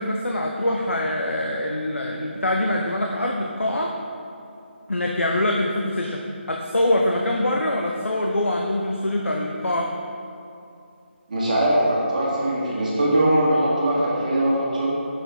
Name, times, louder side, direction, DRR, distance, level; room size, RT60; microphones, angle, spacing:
voice 1, 0.0-3.9 4.9-9.9, left 1 dB, 85° left, 1 dB, 0.6 m, -24 dB
voice 2, 11.3-14.9, right 1 dB, 40° right, -5 dB, 1.6 m, -21 dB
7.0 x 6.3 x 3.5 m, 2.5 s
figure-of-eight pair, 155°, 7 cm